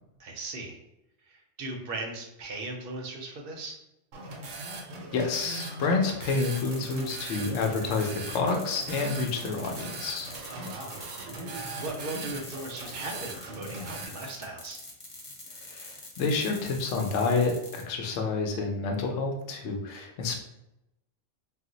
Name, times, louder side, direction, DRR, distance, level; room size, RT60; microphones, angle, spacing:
voice 1, 0.2-0.8 1.2-3.8 10.5-11.0 11.8-14.8, right 2 dB, 60° right, 2 dB, 0.6 m, -38 dB
sound 1, 4.1-14.0, right 2 dB, 80° right, 1.0 m, -40 dB
voice 2, 5.1-10.3 15.6-20.4, left 4 dB, 75° left, 2 dB, 0.9 m, -29 dB
sound 2, 6.4-17.8, left 2 dB, 40° left, 0.5 m, -45 dB
2.4 x 2.0 x 3.7 m, 0.87 s
omnidirectional pair, 1.3 m